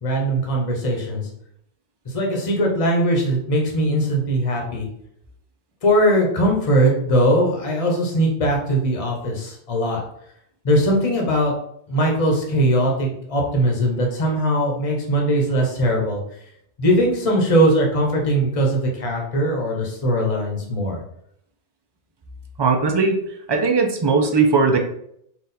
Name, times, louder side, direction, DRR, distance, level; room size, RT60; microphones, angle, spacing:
voice 1, 0.0-1.2 2.0-4.9 5.8-10.0 10.6-11.5 11.9-16.2 16.8-21.0, right 1 dB, 35° left, 0 dB, 0.9 m, -20 dB
voice 2, 22.6-23.2 23.5-24.8, right 4 dB, 40° right, 3 dB, 0.4 m, -18 dB
4.0 x 2.5 x 4.1 m, 0.72 s
omnidirectional pair, 1.1 m